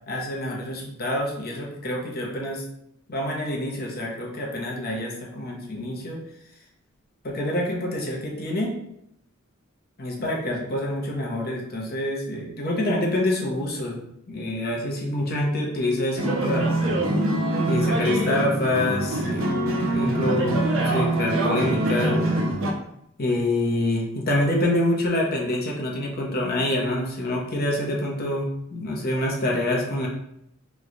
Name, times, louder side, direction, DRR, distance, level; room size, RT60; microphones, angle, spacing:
voice 1, 0.1-2.6 3.1-6.2 7.2-8.7 10.0-14.0 14.3-16.7 17.7-19.5 19.9-22.2 23.2-30.1, left 1 dB, 45° left, -2 dB, 0.8 m, -26 dB
sound 1, 16.2-22.7, right 1 dB, 65° right, 0.6 m, -24 dB
3.1 x 2.3 x 3.8 m, 0.77 s
head